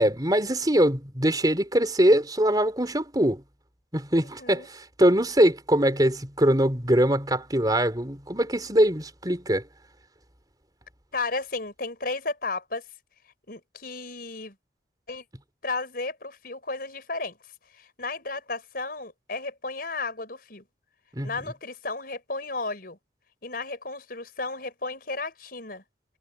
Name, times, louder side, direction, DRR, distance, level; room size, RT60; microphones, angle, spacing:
voice 1, 0.0-3.4 3.9-9.6 21.1-21.3, right 1 dB, 20° right, 4.6 m, -22 dB
voice 2, 4.2-4.7 11.1-12.8 13.5-14.6 15.1-15.2 15.6-17.4 17.7-20.6 21.2-23.0 23.4-25.8, left 3 dB, 55° left, 5.3 m, -33 dB
head